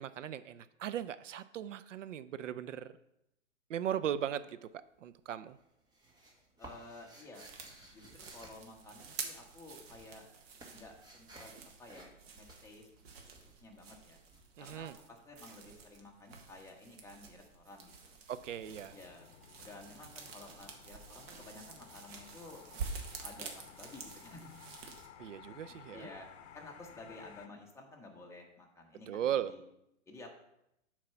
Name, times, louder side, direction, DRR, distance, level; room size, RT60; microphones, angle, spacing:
voice 1, 0.0-2.9 3.7-4.6 5.0-5.6 14.6-14.9 18.3-19.0 25.2-26.1 29.1-29.5, right 10 dB, 75° right, 14 dB, 0.6 m, -37 dB
sound 1, 4.7-5.2 5.5-9.5 9.8-15.4, right 1 dB, 10° right, 1.3 m, -56 dB
voice 2, 6.6-7.5 7.9-10.2 10.7-11.5 11.8-12.9 13.2-14.2 14.6-18.2 18.9-19.3 19.6-22.7 23.2-24.6 25.4-26.3 26.5-29.6 30.1-30.3, left 2 dB, 5° left, -1 dB, 1.3 m, -53 dB
sound 2, 7.3-25.1, right 5 dB, 55° right, 1.6 m, -49 dB
sound 3, 18.3-27.5, left 9 dB, 60° left, 0.8 m, -56 dB
7.6 x 4.7 x 5.8 m, 0.82 s
hypercardioid pair, 125°, 38 cm